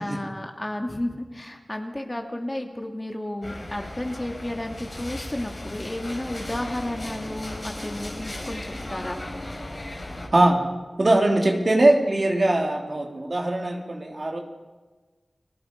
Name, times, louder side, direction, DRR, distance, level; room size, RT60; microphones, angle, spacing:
voice 1, 0.0-9.2, left 1 dB, 25° left, 3 dB, 2.7 m, -32 dB
sound 1, 3.4-10.3, left 1 dB, 45° left, 4.9 m, -36 dB
voice 2, 10.3-14.4, right 1 dB, 50° right, 1 dB, 3.3 m, -21 dB
29.5 x 18.0 x 5.5 m, 1.3 s
cardioid pair, 40°, 0 cm